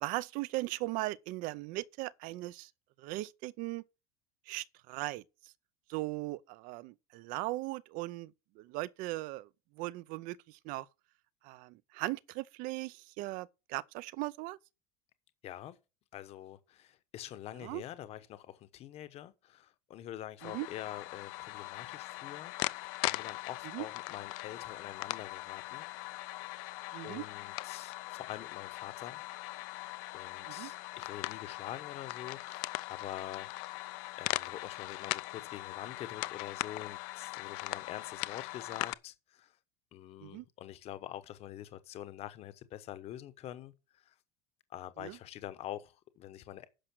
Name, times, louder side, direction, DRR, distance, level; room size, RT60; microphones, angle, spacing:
voice 1, 0.0-2.7 3.0-3.8 4.5-5.2 5.9-8.3 8.6-9.5 9.8-10.9 11.4-14.6 17.6-17.8 20.4-20.7 23.7-23.8 26.9-27.2 30.5-30.7 40.2-40.4 45.0-45.2, right 20 dB, 45° right, 0.5 m, -38 dB
voice 2, 15.4-15.8 16.1-22.5 23.0-25.9 26.3-26.4 27.0-29.2 30.1-33.5 34.2-39.5 39.9-44.1 44.7-46.7, left 12 dB, 30° left, 1.0 m, -45 dB
sound 1, 20.4-38.9, left 22 dB, 55° left, 0.5 m, -40 dB
10.0 x 6.3 x 6.1 m
cardioid pair, 170°, 20 cm